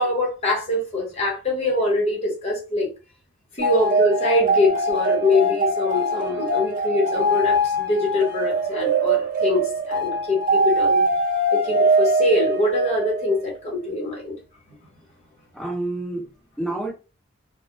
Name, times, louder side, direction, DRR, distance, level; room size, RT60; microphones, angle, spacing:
voice 1, 0.0-2.9 3.5-11.1 11.5-14.3, left 2 dB, 30° left, 0.9 m, -23 dB
sound 1, 3.6-13.4, right 1 dB, 40° right, 0.5 m, -22 dB
voice 2, 15.5-16.9, right 2 dB, ahead, 1.0 m, -30 dB
2.4 x 2.0 x 2.8 m
head